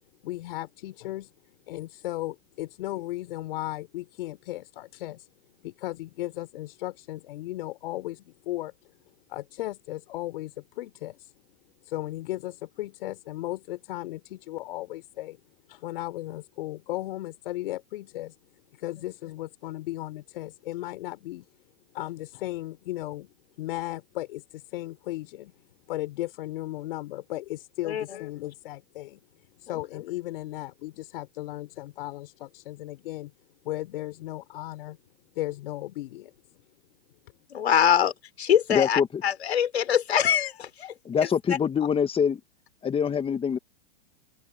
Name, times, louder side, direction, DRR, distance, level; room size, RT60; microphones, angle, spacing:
voice 1, 0.2-1.3 1.7-5.3 5.6-8.9 9.3-11.3 11.8-15.4 15.7-18.4 18.7-21.5 21.9-25.5 25.9-29.2 29.6-33.3 33.6-35.0 35.3-36.3, left 16 dB, 60° left, 4.2 m, -36 dB
voice 2, 37.5-38.1 38.4-40.9 41.5-41.6, left 9 dB, 80° left, 4.1 m, -23 dB
voice 3, 38.7-39.1 41.1-42.4 42.8-43.6, left 7 dB, 15° left, 1.9 m, -24 dB
open air
hypercardioid pair, 115°, 31 cm